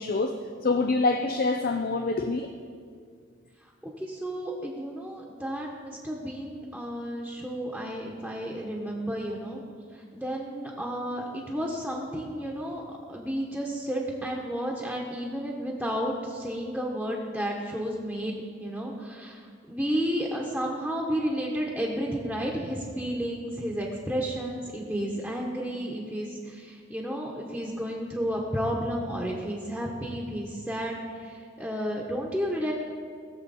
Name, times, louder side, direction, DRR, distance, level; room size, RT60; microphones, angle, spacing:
voice 1, 0.0-2.5, left 3 dB, 50° left, 6 dB, 0.5 m, -26 dB
voice 2, 3.8-9.6 9.9-12.8 13.1-32.7, equal, ahead, -2 dB, 1.2 m, -32 dB
19.5 x 7.2 x 4.2 m, 2.1 s
head